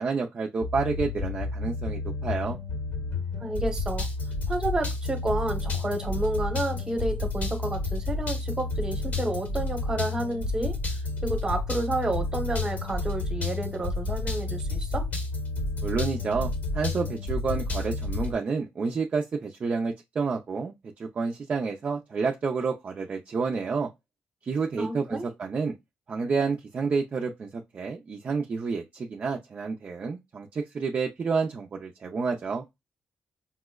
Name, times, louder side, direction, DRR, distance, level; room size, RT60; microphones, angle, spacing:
voice 1, 0.0-2.6 15.8-23.9 24.4-25.7 26.1-32.6, right 4 dB, 35° right, 0.4 m, -29 dB
sound 1, 0.6-18.3, left 3 dB, 45° left, 0.9 m, -30 dB
voice 2, 3.4-4.1 4.5-15.0 24.8-25.3, right 2 dB, 20° right, 0.9 m, -30 dB
5.3 x 2.0 x 2.2 m
cardioid pair, 150°, 4 cm